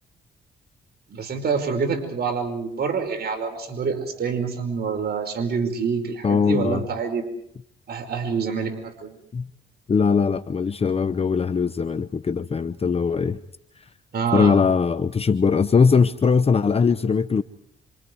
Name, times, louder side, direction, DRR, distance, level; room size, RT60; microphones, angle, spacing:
voice 1, 1.1-7.3 7.9-9.2 14.1-14.6, right 5 dB, 55° right, 3 dB, 5.1 m, -26 dB
voice 2, 6.2-6.9 9.3-9.5 9.9-13.4 13.8-13.9 14.3-17.4, left 5 dB, 30° left, 12 dB, 0.9 m, -20 dB
28.0 x 27.5 x 4.7 m, 0.70 s
cardioid pair, 90°, 20 cm